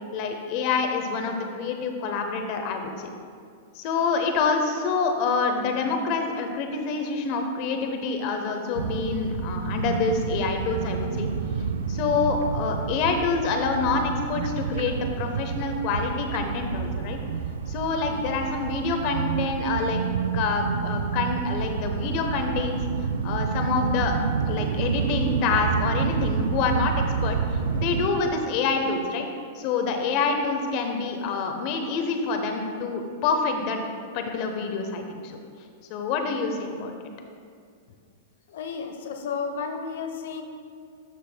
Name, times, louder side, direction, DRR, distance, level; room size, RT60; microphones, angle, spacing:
voice 1, 0.1-3.1 3.7-11.3 11.9-17.2 17.7-20.0 20.3-22.8 23.2-24.1 24.4-27.4 27.7-29.2 29.5-33.8 34.1-35.4 35.9-36.9, left 4 dB, 45° left, 4 dB, 0.9 m, -27 dB
sound 1, 8.8-28.1, right 6 dB, 80° right, 0.4 m, -29 dB
voice 2, 38.5-40.4, left 5 dB, 70° left, 5 dB, 0.8 m, -32 dB
12.5 x 5.9 x 2.3 m, 2.2 s
hypercardioid pair, 130°, 0 cm